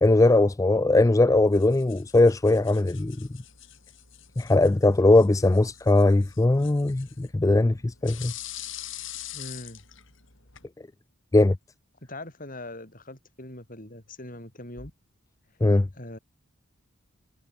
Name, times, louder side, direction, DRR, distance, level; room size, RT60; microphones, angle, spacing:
voice 1, 0.0-3.3 4.4-8.3 11.3-11.6 15.6-15.9, left 2 dB, 15° left, 0.4 m, -20 dB
sound 1, 1.5-10.7, left 12 dB, 60° left, 6.4 m, -44 dB
voice 2, 9.3-9.8 12.0-14.9 15.9-16.2, left 1 dB, 40° left, 6.5 m, -41 dB
head